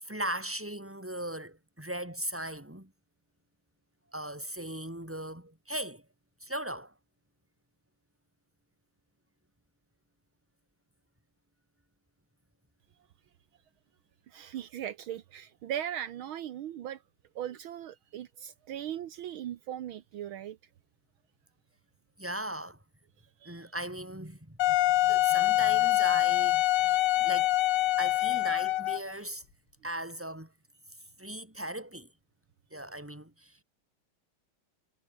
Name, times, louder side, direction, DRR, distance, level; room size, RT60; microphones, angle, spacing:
voice 1, 0.0-2.9 4.1-6.0 6.4-6.9 22.2-22.8 23.4-27.6 28.0-29.4 29.8-30.5 31.2-32.1 32.7-33.6, right 1 dB, 5° right, 4.6 m, -38 dB
voice 2, 14.3-17.0 17.4-20.6 23.4-23.7 26.8-27.0, right 11 dB, 75° right, 1.8 m, -39 dB
Wind instrument woodwind instrument, 24.6-29.1, left 16 dB, 85° left, 1.6 m, -25 dB
omnidirectional pair, 2.3 m